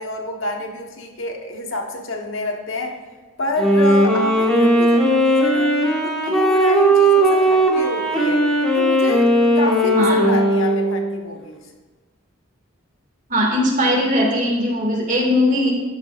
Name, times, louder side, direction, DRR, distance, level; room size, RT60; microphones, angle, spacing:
voice 1, 0.0-3.0 3.4-5.7 6.0-8.4 8.7-9.3 9.5-11.6, left 1 dB, 70° left, 2 dB, 1.4 m, -28 dB
Wind instrument woodwind instrument, 3.5-11.2, right 1 dB, 5° left, 1.7 m, -17 dB
voice 2, 13.3-15.7, left 1 dB, 40° right, -1 dB, 2.3 m, -19 dB
12.0 x 10.5 x 2.5 m, 1.3 s
head